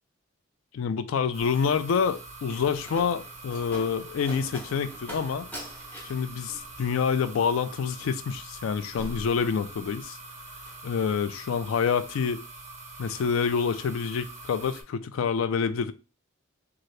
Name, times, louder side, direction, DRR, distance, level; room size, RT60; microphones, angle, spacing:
voice 1, 0.7-5.5 6.0-10.2 10.8-12.4 13.0-15.9, left 6 dB, 75° left, 0.3 m, -27 dB
sound 1, 1.3-14.8, right 2 dB, 35° right, 0.5 m, -44 dB
Slam, 2.1-10.1 10.4-10.9, equal, 10° left, 0.6 m, -45 dB
2.7 x 2.5 x 3.1 m
head